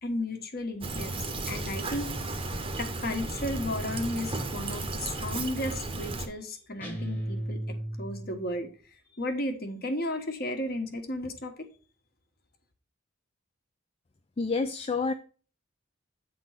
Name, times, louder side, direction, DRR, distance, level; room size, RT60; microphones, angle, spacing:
voice 1, 0.0-2.1 2.7-7.6 8.0-8.7 9.2-11.7, left 1 dB, 45° left, 5 dB, 1.3 m, -34 dB
Fill (with liquid), 0.8-6.3, right 2 dB, 25° right, 0.9 m, -34 dB
sound 1, 6.8-8.5, right 1 dB, 10° left, 1.2 m, -35 dB
voice 2, 14.4-15.1, left 4 dB, 30° left, 8 dB, 0.4 m, -28 dB
9.2 x 3.9 x 5.7 m, 0.38 s
head